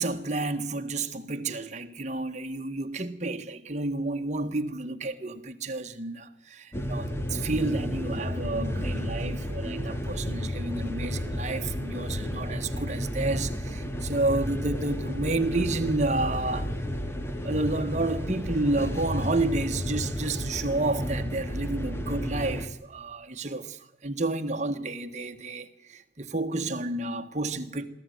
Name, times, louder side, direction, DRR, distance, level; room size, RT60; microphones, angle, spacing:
voice 1, 0.0-16.7 17.4-27.9, right 2 dB, 40° right, 1.5 m, -30 dB
sound 1, 6.7-22.7, equal, 15° left, 2.0 m, -32 dB
23.0 x 14.5 x 9.3 m
head